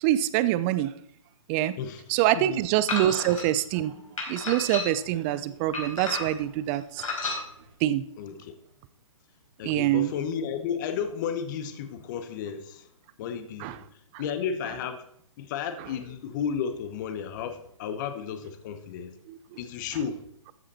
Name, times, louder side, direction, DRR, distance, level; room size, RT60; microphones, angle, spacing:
voice 1, 0.0-0.9 1.5-1.7 2.1-3.9 4.3-7.0 7.8-8.0 9.6-10.1 13.6-13.7, right 13 dB, 20° right, 15 dB, 0.5 m, -25 dB
voice 2, 1.8-2.7 8.2-8.5 9.6-12.9 13.2-13.7 14.2-15.0 15.4-19.1 19.6-20.2, left 7 dB, 35° left, 10 dB, 1.0 m, -33 dB
sound 1, 2.9-3.4 4.2-5.1 5.7-6.5 7.0-7.4, left 3 dB, 70° left, 4.2 m, -32 dB
13.5 x 7.5 x 4.2 m, 0.71 s
figure-of-eight pair, 130°, 18 cm